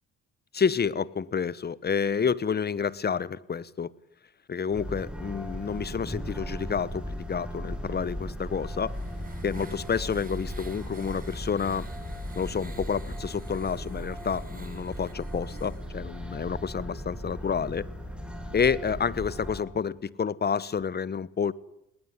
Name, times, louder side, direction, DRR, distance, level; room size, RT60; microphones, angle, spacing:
voice 1, 0.5-3.9 4.5-8.9 9.4-11.9 12.3-17.9 18.5-21.5, left 6 dB, 35° left, 1.1 m, -29 dB
sound 1, 4.7-19.6, equal, 5° right, 6.4 m, -37 dB
sound 2, 8.4-15.9, right 4 dB, 30° right, 3.2 m, -52 dB
20.0 x 19.5 x 9.6 m
cardioid pair, 90°, 30 cm